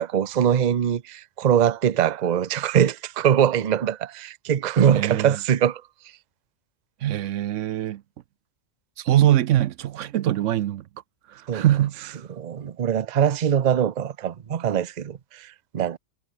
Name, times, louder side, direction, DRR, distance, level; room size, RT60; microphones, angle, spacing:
voice 1, 0.0-5.8 11.5-11.6 12.3-16.0, right 9 dB, 45° right, 0.7 m, -22 dB
voice 2, 4.9-5.4 7.0-8.0 9.0-10.8 11.3-12.2, right 12 dB, 80° right, 1.0 m, -23 dB
omnidirectional pair, 1.3 m